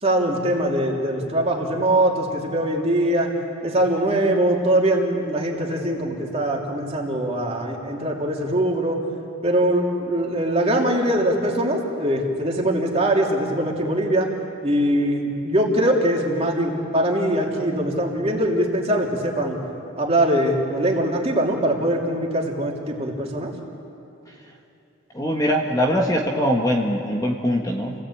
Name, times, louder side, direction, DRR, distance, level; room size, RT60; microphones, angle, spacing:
voice 1, 0.0-3.3 3.6-9.0 9.4-14.3 14.6-19.6 20.0-23.5, right 1 dB, 30° right, -1 dB, 3.1 m, -22 dB
voice 2, 25.1-27.9, equal, 15° left, 1 dB, 1.4 m, -22 dB
29.0 x 17.0 x 8.8 m, 2.8 s
head